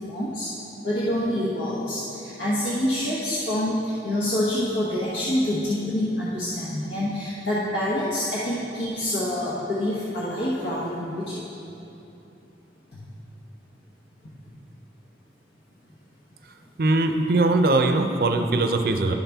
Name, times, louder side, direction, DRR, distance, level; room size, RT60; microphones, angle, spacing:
voice 1, 0.1-0.5 0.8-11.4 12.9-13.0, left 1 dB, 75° left, -8 dB, 1.1 m, -26 dB
voice 2, 16.8-19.1, right 2 dB, 55° right, 5 dB, 0.5 m, -21 dB
11.5 x 5.7 x 3.5 m, 2.9 s
head